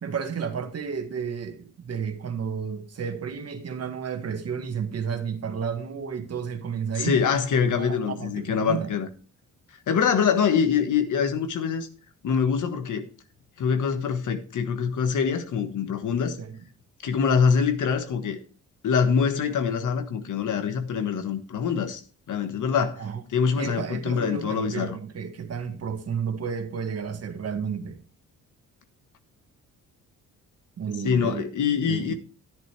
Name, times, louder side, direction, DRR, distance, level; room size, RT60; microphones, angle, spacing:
voice 1, 0.0-7.2 7.6-8.9 16.4-16.6 23.0-23.2 23.6-28.0 30.8-31.5 31.8-32.1, right 6 dB, 50° right, 1.6 m, -32 dB
voice 2, 6.9-9.1 9.9-11.9 12.2-13.1 13.6-16.4 17.0-18.4 18.8-22.0 22.3-23.0 23.3-25.0 31.0-32.1, left 6 dB, 65° left, 1.5 m, -24 dB
10.5 x 10.5 x 3.3 m
cardioid pair, 85°, 33 cm